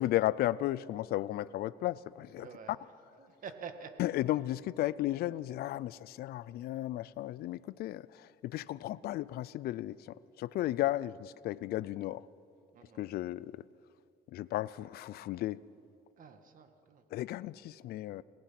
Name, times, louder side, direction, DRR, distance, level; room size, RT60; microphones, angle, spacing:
voice 1, 0.0-2.8 4.0-12.3 13.0-13.5 14.3-15.6 17.1-18.2, left 15 dB, 65° left, 0.5 m, -34 dB
voice 2, 2.4-2.7 3.2-4.1 12.7-13.1 16.2-17.0, right 6 dB, 55° right, 2.0 m, -47 dB
29.0 x 18.0 x 6.0 m
cardioid pair, 110°, 17 cm